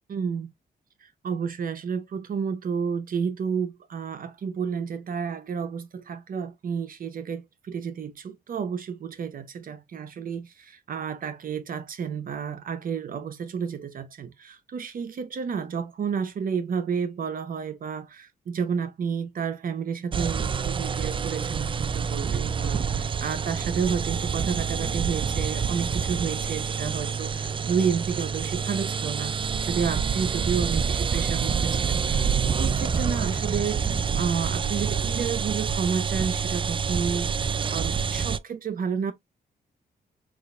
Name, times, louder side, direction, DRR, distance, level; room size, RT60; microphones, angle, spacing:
voice 1, 0.1-0.5 1.0-32.3 32.6-39.1, right 6 dB, 60° right, 0.7 m, -31 dB
sound 1, 20.1-38.4, right 6 dB, 30° right, 0.4 m, -27 dB
6.2 x 2.5 x 2.2 m
cardioid pair, 75°, 16 cm